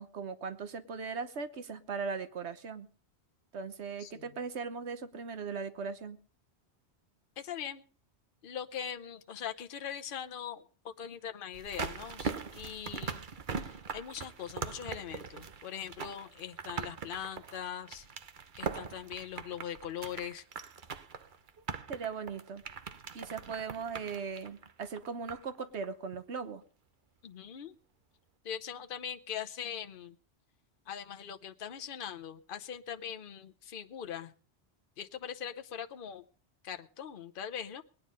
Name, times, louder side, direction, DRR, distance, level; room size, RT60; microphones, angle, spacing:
voice 1, 0.0-2.9 3.5-6.2 21.9-22.6 23.1-26.6, right 5 dB, 80° right, 11 dB, 1.3 m, -39 dB
voice 2, 4.0-4.4 7.4-7.8 8.4-13.2 13.6-18.1 18.6-20.4 27.2-27.8 28.4-30.2 30.9-34.3 35.0-36.2 36.6-37.8, left 8 dB, 55° left, 7 dB, 1.0 m, -41 dB
sound 1, 11.5-25.6 25.8-25.9, right 5 dB, 50° right, 1.0 m, -41 dB
20.0 x 9.4 x 5.3 m, 0.42 s
omnidirectional pair, 1.1 m